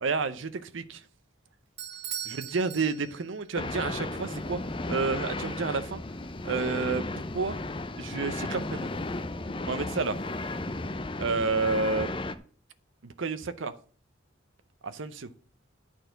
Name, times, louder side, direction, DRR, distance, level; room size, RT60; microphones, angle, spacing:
voice 1, 0.0-1.0 2.2-4.6 4.9-6.0 6.4-7.0 7.3-7.6 8.0-8.9 9.6-10.2 11.2-12.1 13.0-13.7 14.8-15.3, right 4 dB, 75° right, 0.7 m, -30 dB
Bell / Doorbell, 1.8-3.5, right 9 dB, 50° right, 1.0 m, -39 dB
sound 1, 3.5-12.3, left 2 dB, 25° left, 0.5 m, -34 dB
10.0 x 4.5 x 7.9 m
head